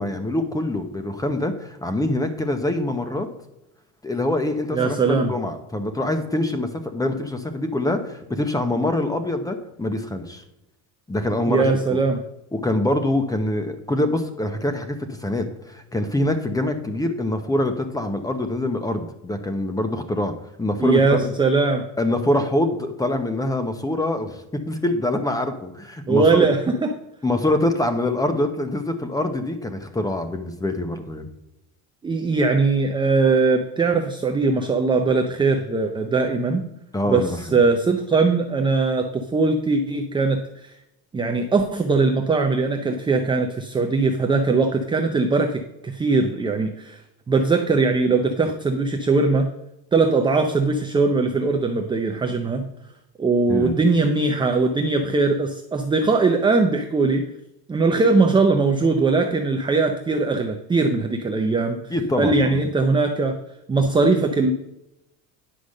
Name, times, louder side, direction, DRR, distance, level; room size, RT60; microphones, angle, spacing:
voice 1, 0.0-3.3 4.0-10.4 11.1-12.0 12.5-20.3 20.6-21.3 22.0-26.5 27.2-31.2 36.9-37.6 53.5-53.8 61.9-62.7, left 1 dB, 10° left, 8 dB, 0.9 m, -24 dB
voice 2, 4.7-5.3 11.5-12.2 20.8-21.8 26.1-26.9 32.0-36.6 37.1-40.4 41.1-47.0 47.3-49.5 49.9-52.6 53.2-57.3 57.7-61.8 62.2-63.4 63.7-64.5, right 3 dB, 10° right, 4 dB, 0.5 m, -20 dB
9.9 x 5.1 x 6.5 m, 0.89 s
cardioid pair, 140°, 43 cm